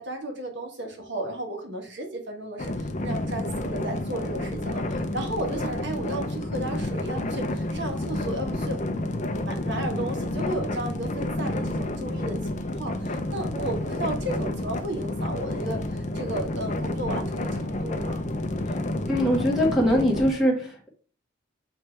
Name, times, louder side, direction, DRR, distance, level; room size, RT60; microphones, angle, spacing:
voice 1, 0.0-18.3, right 1 dB, 55° right, 3 dB, 1.6 m, -34 dB
sound 1, 2.6-20.3, left 1 dB, 35° left, 0.6 m, -30 dB
voice 2, 19.0-20.9, equal, ahead, -2 dB, 1.6 m, -22 dB
7.1 x 3.3 x 4.5 m, 0.41 s
head